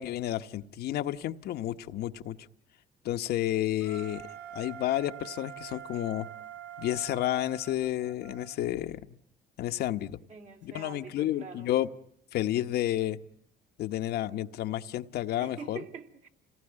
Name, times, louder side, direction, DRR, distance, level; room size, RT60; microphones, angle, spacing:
voice 1, 0.0-2.4 3.0-4.2 4.5-6.3 6.8-9.2 9.6-10.2 10.6-11.9 12.3-13.2 13.8-15.8, left 13 dB, 70° left, 1.0 m, -31 dB
Wind instrument woodwind instrument, 3.8-8.6, right 10 dB, 80° right, 3.5 m, -45 dB
voice 2, 10.3-11.8 14.3-14.4 15.4-16.3, right 5 dB, 45° right, 2.8 m, -45 dB
28.0 x 18.5 x 9.8 m
cardioid pair, 110°, 17 cm